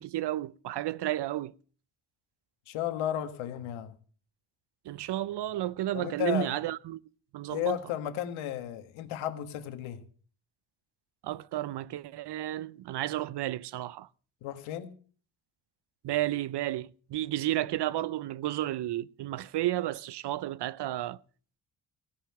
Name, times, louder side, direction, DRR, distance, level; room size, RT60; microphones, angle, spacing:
voice 1, 0.0-1.5 4.8-7.0 7.3-7.8 11.2-14.1 16.0-21.2, right 14 dB, 60° right, 0.8 m, -32 dB
voice 2, 2.7-3.9 5.9-6.5 7.5-10.0 14.4-14.9, left 11 dB, 80° left, 1.7 m, -34 dB
16.5 x 5.7 x 8.8 m
supercardioid pair, 65°, 48 cm